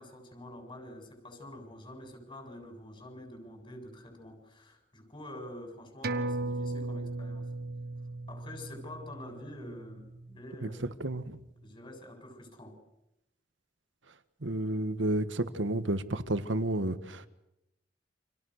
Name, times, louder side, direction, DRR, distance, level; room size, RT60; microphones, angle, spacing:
voice 1, 0.0-7.5 8.3-11.0 11.6-12.8, left 1 dB, 30° left, 4 dB, 7.4 m, -47 dB
sound 1, 6.0-11.0 11.3-11.4, right 2 dB, 60° right, 1.6 m, -37 dB
voice 2, 11.0-11.4 14.4-17.3, right 1 dB, 90° right, 12 dB, 1.6 m, -31 dB
30.0 x 27.0 x 6.6 m, 0.88 s
head